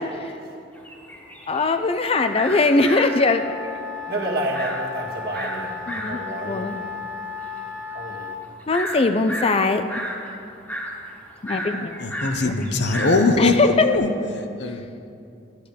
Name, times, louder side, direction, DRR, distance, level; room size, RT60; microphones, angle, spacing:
sound 1, 0.7-14.0, equal, 10° left, 1.5 m, -33 dB
voice 1, 1.5-3.8 5.9-6.7 8.7-9.8 11.4-12.1 12.4-12.5 13.4-13.9, left 3 dB, 30° left, 0.4 m, -21 dB
Wind instrument woodwind instrument, 2.0-8.4, left 5 dB, 15° right, 1.5 m, -35 dB
voice 2, 4.1-7.0 7.9-8.3, right 1 dB, 55° right, 1.8 m, -30 dB
voice 3, 12.0-14.1 14.6-14.8, left 2 dB, 65° left, 0.8 m, -21 dB
12.0 x 10.5 x 5.1 m
head